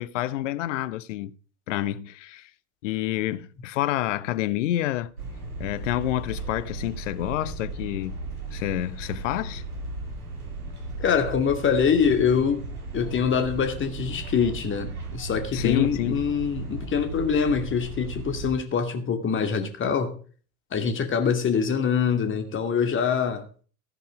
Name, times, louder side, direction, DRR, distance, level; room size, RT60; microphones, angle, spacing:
voice 1, 0.0-1.3 1.7-2.5 2.8-5.1 5.6-8.2 8.5-9.6 15.5-16.2, left 14 dB, 55° left, 0.9 m, -28 dB
sound 1, 5.2-18.5, right 2 dB, 80° right, 3.0 m, -36 dB
voice 2, 11.0-12.6 12.9-20.1 20.7-23.4, left 6 dB, 25° left, 2.4 m, -24 dB
14.5 x 9.4 x 4.8 m
figure-of-eight pair, 85°, 44 cm